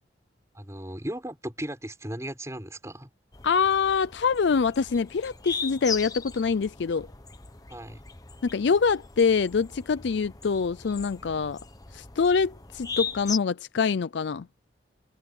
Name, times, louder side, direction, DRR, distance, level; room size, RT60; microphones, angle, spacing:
voice 1, 0.5-3.1 7.7-8.0, right 1 dB, 15° right, 6.5 m, -36 dB
sound 1, 3.3-13.4, left 5 dB, 20° left, 1.1 m, -39 dB
voice 2, 3.4-7.1 8.4-11.6 11.9-14.5, left 5 dB, 70° left, 0.4 m, -25 dB
head